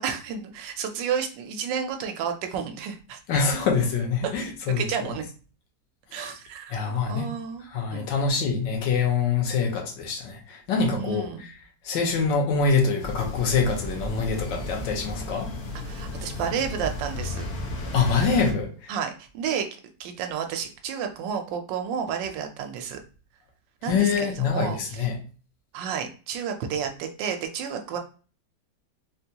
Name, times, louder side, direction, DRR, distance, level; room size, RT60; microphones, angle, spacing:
voice 1, 0.0-3.2 4.4-5.2 6.1-7.6 7.9-8.1 11.0-11.4 15.8-17.4 18.9-19.7 20.0-23.0 23.8-25.1 25.7-28.0, right 7 dB, 85° right, 1.3 m, -31 dB
voice 2, 3.3-4.8 6.1-6.3 6.7-7.3 7.7-11.5 11.8-15.5 17.9-18.9 23.9-25.2, left 5 dB, 80° left, 1.5 m, -25 dB
sound 1, 13.0-18.5, left 1 dB, 60° left, 1.1 m, -34 dB
4.0 x 2.2 x 2.8 m
omnidirectional pair, 1.9 m